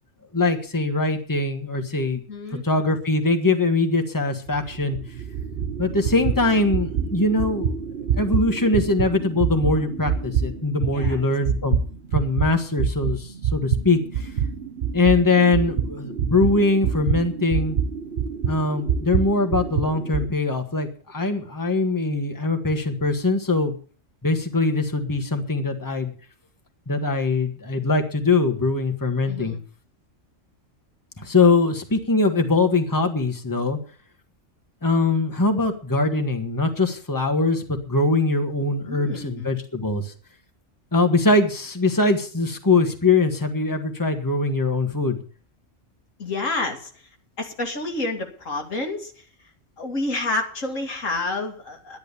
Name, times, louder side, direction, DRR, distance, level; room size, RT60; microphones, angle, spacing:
voice 1, 0.3-2.2 2.6-5.0 5.8-7.7 8.1-11.8 12.1-14.3 14.9-17.8 18.5-23.8 24.2-26.1 26.9-29.5 31.2-33.8 34.8-40.1 40.9-45.2, left 3 dB, 15° left, 5 dB, 1.6 m, -22 dB
voice 2, 2.3-2.8 10.9-11.2 29.3-29.6 38.8-39.5 46.2-46.9 47.4-49.1 49.8-52.0, left 2 dB, 90° left, 3 dB, 2.6 m, -29 dB
sound 1, 4.5-12.5 12.8-20.3, right 7 dB, 55° right, 1.2 m, -26 dB
11.5 x 10.5 x 7.0 m, 0.41 s
omnidirectional pair, 1.3 m